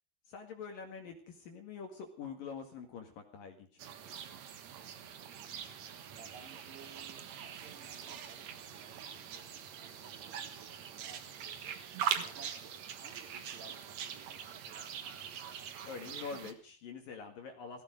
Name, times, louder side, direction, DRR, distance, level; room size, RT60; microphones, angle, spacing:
voice 1, 0.3-3.8 15.8-17.8, left 5 dB, 55° left, 5 dB, 3.1 m, -45 dB
sound 1, 3.8-16.5, right 8 dB, 75° right, 1.6 m, -42 dB
voice 2, 5.3-5.8 6.2-11.6 12.2-15.2, right 4 dB, 60° right, 3 dB, 5.4 m, -58 dB
17.0 x 16.0 x 5.1 m, 0.40 s
omnidirectional pair, 5.5 m